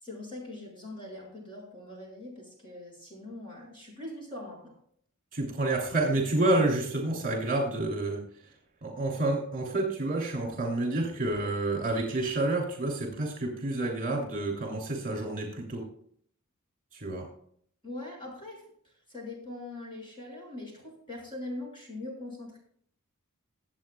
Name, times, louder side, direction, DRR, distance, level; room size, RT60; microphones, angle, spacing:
voice 1, 0.0-4.7 17.8-22.6, left 2 dB, 25° left, -2 dB, 6.1 m, -42 dB
voice 2, 5.3-8.2 8.8-15.8 16.9-17.3, right 2 dB, 40° right, 0 dB, 3.0 m, -29 dB
24.0 x 8.3 x 2.3 m, 0.62 s
head